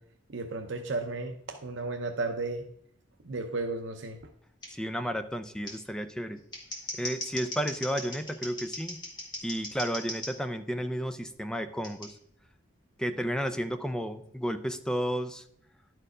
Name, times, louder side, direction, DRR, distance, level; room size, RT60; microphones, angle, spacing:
voice 1, 0.3-2.7 3.2-4.2, right 3 dB, 75° right, 4 dB, 0.7 m, -34 dB
Scissors, 4.6-4.7 5.6-5.7 6.4-10.3 11.8-12.1, left 1 dB, 25° left, 2.1 m, -38 dB
voice 2, 4.7-6.4 6.9-9.0 9.4-12.1 13.0-15.4, equal, 5° left, 9 dB, 0.5 m, -32 dB
11.0 x 4.6 x 4.9 m, 0.69 s
head